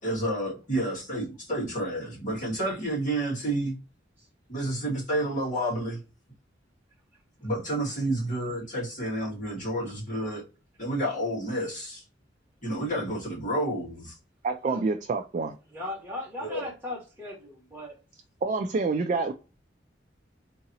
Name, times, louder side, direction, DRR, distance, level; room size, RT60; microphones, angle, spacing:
voice 1, 0.0-3.8 4.5-6.0 7.4-10.4 10.8-12.0 12.6-14.2 16.4-16.7, right 1 dB, 45° left, 2.1 m, -30 dB
voice 2, 14.4-15.6 18.4-19.3, right 4 dB, 40° right, 0.3 m, -27 dB
voice 3, 15.7-17.9, left 1 dB, 10° right, 1.6 m, -37 dB
3.7 x 2.9 x 2.8 m
head